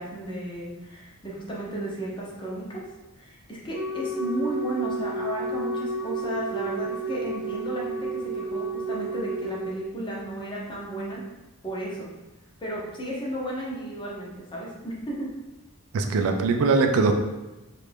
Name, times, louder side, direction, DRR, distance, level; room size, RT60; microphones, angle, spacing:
voice 1, 0.0-2.8 3.2-11.2 11.6-12.1 12.6-15.3, right 1 dB, 20° left, -4 dB, 0.8 m, -34 dB
Wind instrument woodwind instrument, 3.7-9.8, right 2 dB, 50° left, 1.1 m, -31 dB
voice 2, 15.9-17.1, right 4 dB, 70° right, 5 dB, 0.4 m, -21 dB
3.2 x 2.5 x 3.3 m, 1.0 s
head